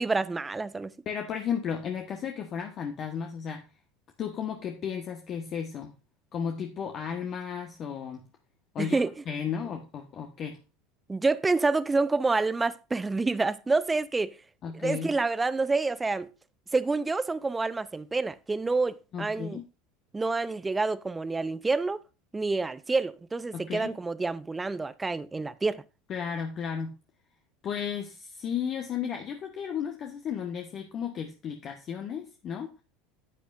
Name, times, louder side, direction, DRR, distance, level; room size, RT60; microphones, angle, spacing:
voice 1, 0.0-0.9 8.8-9.1 11.1-14.4 14.7-16.3 16.7-19.6 20.1-22.0 22.3-25.8, right 3 dB, 15° right, 0.6 m, -28 dB
voice 2, 1.0-3.6 4.2-5.9 6.3-8.2 8.7-9.0 9.3-10.6 14.6-15.1 19.1-19.6 23.5-23.9 26.1-26.9 27.6-32.7, left 7 dB, 45° left, 1.2 m, -34 dB
10.0 x 8.5 x 2.5 m
hypercardioid pair, 80°, 0 cm